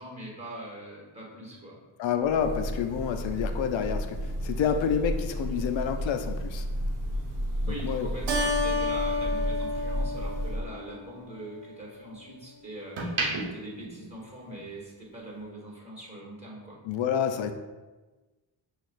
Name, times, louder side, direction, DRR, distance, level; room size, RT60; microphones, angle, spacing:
voice 1, 0.0-1.8 7.7-16.8, right 1 dB, 15° right, -3 dB, 1.4 m, -42 dB
voice 2, 2.0-6.6 7.7-8.1 16.8-17.5, left 7 dB, 70° left, 7 dB, 0.5 m, -28 dB
Breathing / Bird, 2.2-10.7, equal, 40° right, 1.0 m, -32 dB
sound 1, 8.1-10.5 10.9-12.3 12.7-14.9 15.2-15.4, right 2 dB, 85° right, 0.9 m, -36 dB
Keyboard (musical), 8.3-11.2, left 2 dB, 60° right, 0.7 m, -30 dB
6.0 x 2.4 x 2.4 m, 1.2 s
cardioid pair, 75°, 48 cm